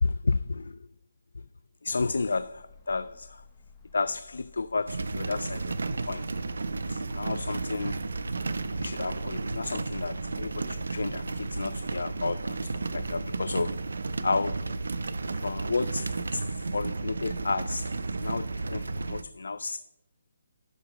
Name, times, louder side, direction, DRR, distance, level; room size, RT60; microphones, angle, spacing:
voice 1, 0.0-0.9 1.3-1.5 1.8-3.4 3.9-5.8 6.1-6.3 6.9-8.0 8.8-13.8 14.2-14.7 15.4-19.8, left 3 dB, 90° left, 0.3 m, -32 dB
sound 1, 2.1-15.5, left 4 dB, 15° left, 0.9 m, -54 dB
sound 2, 4.9-19.2, right 3 dB, 90° right, 0.6 m, -33 dB
10.5 x 5.1 x 4.9 m
hypercardioid pair, 175°, 0 cm